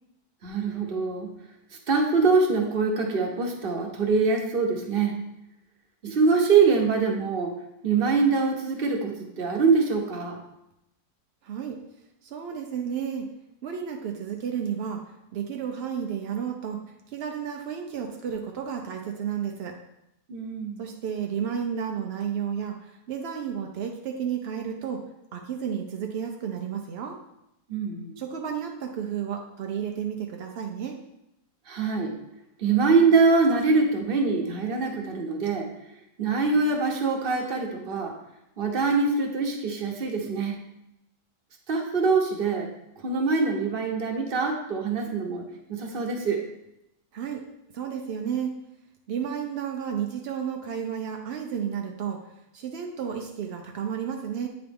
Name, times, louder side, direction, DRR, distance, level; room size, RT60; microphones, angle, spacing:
voice 1, 0.4-1.3 1.9-5.1 6.0-7.5 7.8-10.4 20.3-20.8 27.7-28.2 31.7-32.1 32.6-35.7 36.2-38.1 38.6-40.6 41.7-42.7 43.0-45.4 45.7-46.4, right 4 dB, 40° right, 2 dB, 0.9 m, -24 dB
voice 2, 11.4-11.8 12.2-13.3 13.6-15.0 15.3-16.8 17.1-19.8 20.8-25.0 25.3-27.2 28.2-31.0 47.1-47.4 47.7-48.5 49.1-52.2 52.5-54.5, right 8 dB, 70° right, 2 dB, 0.5 m, -32 dB
8.8 x 3.9 x 3.5 m, 0.86 s
omnidirectional pair, 1.7 m